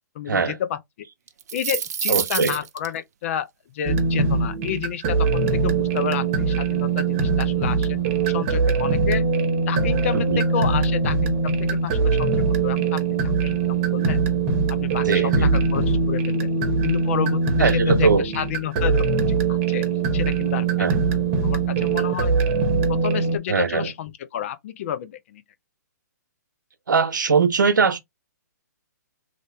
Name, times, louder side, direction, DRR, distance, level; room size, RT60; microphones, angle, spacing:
voice 1, 0.2-0.8 1.5-8.0 8.3-9.3 9.7-14.2 14.7-16.5 16.8-19.1 19.5-19.9 20.1-21.2 21.4-22.4 22.9-25.4, left 9 dB, 45° left, 0.5 m, -30 dB
sound 1, 1.3-2.9, right 8 dB, 60° right, 0.5 m, -27 dB
voice 2, 2.1-2.6 10.1-10.4 15.0-15.5 17.6-18.3 20.8-21.0 23.5-23.9 26.9-28.0, right 5 dB, 90° right, 0.7 m, -21 dB
sound 2, 3.8-23.4, right 4 dB, 35° right, 1.0 m, -22 dB
3.3 x 2.5 x 3.2 m
hypercardioid pair, 145°, 10 cm